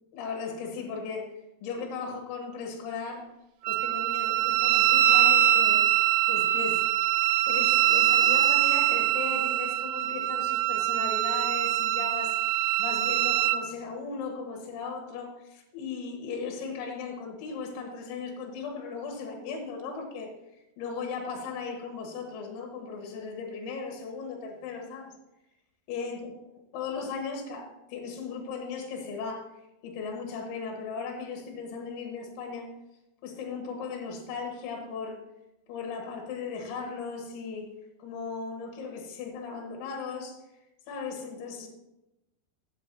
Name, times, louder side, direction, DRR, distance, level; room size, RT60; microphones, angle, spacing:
voice 1, 0.1-3.3 3.7-5.9 6.3-7.1 7.4-20.3 20.8-25.2 25.9-26.3 26.7-29.5 29.8-32.7 33.2-35.2 35.7-37.7 38.0-40.4 40.9-41.7, left 5 dB, 85° left, 2 dB, 3.7 m, -37 dB
Wind instrument woodwind instrument, 3.7-13.6, right 13 dB, 85° right, 2.9 m, -23 dB
13.5 x 8.1 x 2.7 m, 0.92 s
omnidirectional pair, 5.3 m